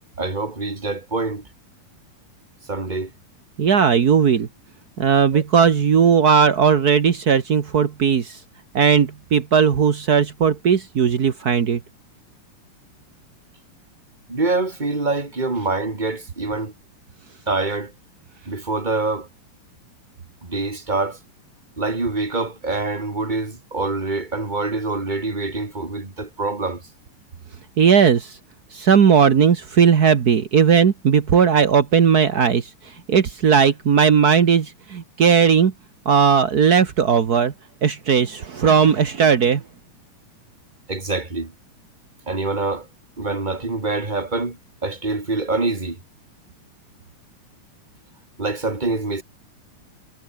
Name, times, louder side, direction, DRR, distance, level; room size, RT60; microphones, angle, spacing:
voice 1, 0.2-1.4 2.7-3.1 5.3-5.4 14.3-16.7 17.5-17.9 18.5-19.3 20.4-21.2 21.8-26.8 40.9-41.5 42.3-42.9 43.2-44.6 44.8-46.0 48.4-49.2, right 3 dB, 15° right, 2.6 m, -25 dB
voice 2, 3.6-4.5 5.0-8.4 8.7-11.8 27.8-28.4 28.7-35.7 36.0-37.5 37.8-39.6, right 7 dB, 55° right, 1.0 m, -17 dB
omnidirectional pair, 3.8 m